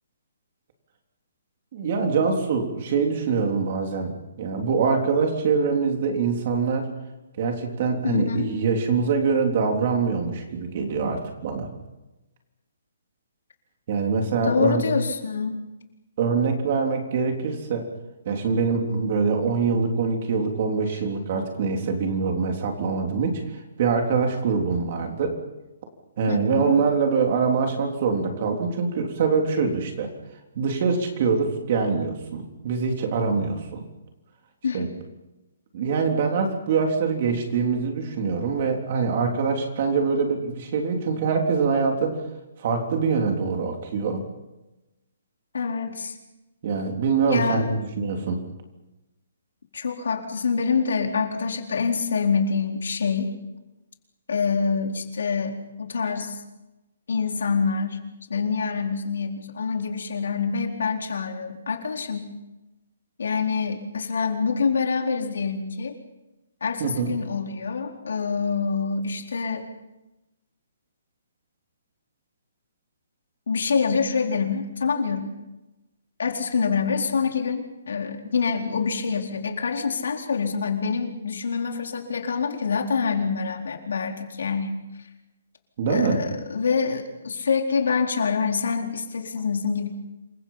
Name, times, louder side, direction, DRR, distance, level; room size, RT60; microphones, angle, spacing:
voice 1, 1.7-6.9 7.4-11.7 13.9-14.8 16.2-17.9 18.3-25.4 26.2-30.1 30.6-33.8 34.7-34.9 35.7-42.2 42.6-44.2 46.6-48.4 66.8-67.1 85.8-86.2, right 5 dB, 30° right, 3 dB, 3.6 m, -24 dB
voice 2, 8.0-8.5 14.4-15.6 26.3-26.7 34.6-34.9 45.5-46.2 47.3-47.8 49.7-53.3 54.3-56.4 57.1-58.0 58.3-62.3 63.2-66.0 66.6-69.6 73.5-75.3 76.2-84.8 85.9-89.9, left 5 dB, 70° left, 3 dB, 4.2 m, -26 dB
27.5 x 24.0 x 5.8 m, 1.0 s
hypercardioid pair, 175°, 0 cm